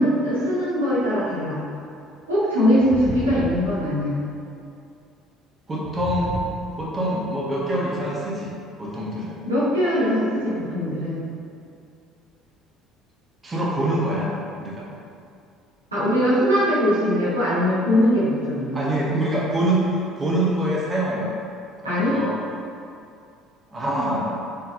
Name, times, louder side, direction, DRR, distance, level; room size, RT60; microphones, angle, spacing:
voice 1, 0.0-1.6 2.3-4.2 9.4-11.2 15.9-18.8 21.8-22.2, equal, 85° right, -11 dB, 1.1 m, -21 dB
sound 1, 1.0-1.1 2.8-4.4 5.8-7.2, right 3 dB, 45° right, 0.4 m, -33 dB
voice 2, 5.7-6.4 6.8-9.4 13.4-14.3 14.6-14.9 18.7-21.4 21.8-22.3 23.7-24.3, right 1 dB, 25° right, -5 dB, 0.8 m, -25 dB
4.4 x 3.4 x 2.5 m, 2.4 s
figure-of-eight pair, 55°, 0 cm